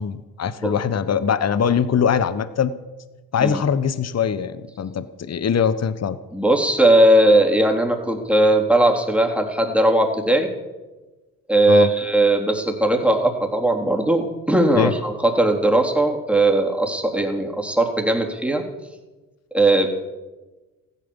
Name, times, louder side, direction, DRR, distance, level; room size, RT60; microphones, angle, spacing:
voice 1, 0.0-2.7 3.3-6.2 11.7-11.9 14.7-14.9, left 7 dB, 40° left, 14 dB, 1.1 m, -22 dB
voice 2, 6.3-10.5 11.5-18.6 19.5-19.9, right 1 dB, 5° right, 2 dB, 3.6 m, -18 dB
15.0 x 12.0 x 7.2 m, 1.2 s
hypercardioid pair, 55°, 40 cm